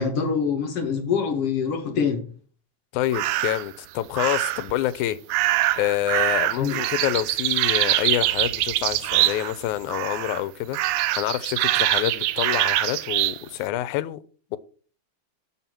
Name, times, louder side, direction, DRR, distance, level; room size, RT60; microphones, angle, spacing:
voice 1, 0.0-2.3 6.6-6.8, left 6 dB, 60° left, 2.0 m, -25 dB
voice 2, 2.9-5.2 5.8-14.2 14.5-14.6, left 14 dB, 85° left, 2.1 m, -27 dB
sound 1, 3.1-3.7 4.2-4.7 5.3-9.6 9.9-10.4 10.7-13.4, right 16 dB, 90° right, 2.0 m, -24 dB
7.3 x 5.7 x 6.0 m
omnidirectional pair, 3.4 m